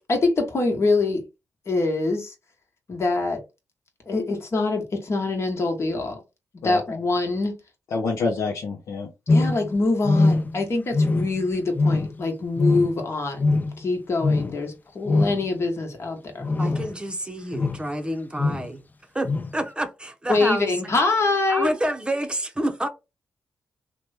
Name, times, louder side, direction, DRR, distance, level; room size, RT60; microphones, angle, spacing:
voice 1, 0.1-1.2 1.7-2.3 2.9-3.4 4.1-6.2 6.6-7.5 9.3-13.5 13.8-16.5 20.3-21.7, left 3 dB, 55° left, 1.2 m, -24 dB
voice 2, 7.9-9.1, left 4 dB, 75° left, 0.6 m, -27 dB
sound 1, 9.3-9.7 10.0-10.6 10.9-11.4 11.7-12.2 12.6-13.0 13.4-13.8 14.2-14.5 15.1-15.4 16.4-17.0 17.5-17.9 18.4-18.7 19.2-19.5, left 3 dB, 30° left, 0.4 m, -22 dB
voice 3, 16.6-18.8 19.1-20.7 21.5-22.9, right 1 dB, 15° right, 0.7 m, -28 dB
2.9 x 2.2 x 3.4 m
supercardioid pair, 45°, 6 cm